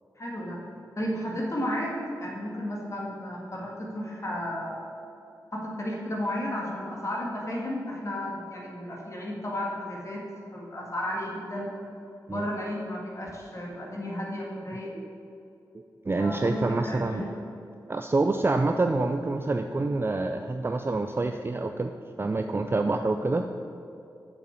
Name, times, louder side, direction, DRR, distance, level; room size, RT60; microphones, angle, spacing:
voice 1, 0.2-0.6 1.0-4.9 5.5-10.2 10.5-11.7 12.3-14.9 16.2-17.3, left 1 dB, 40° left, -3 dB, 1.7 m, -33 dB
voice 2, 15.7-17.3 17.9-23.5, right 3 dB, 30° right, 6 dB, 0.4 m, -27 dB
6.6 x 5.7 x 7.1 m, 2.6 s
cardioid pair, 45°, 8 cm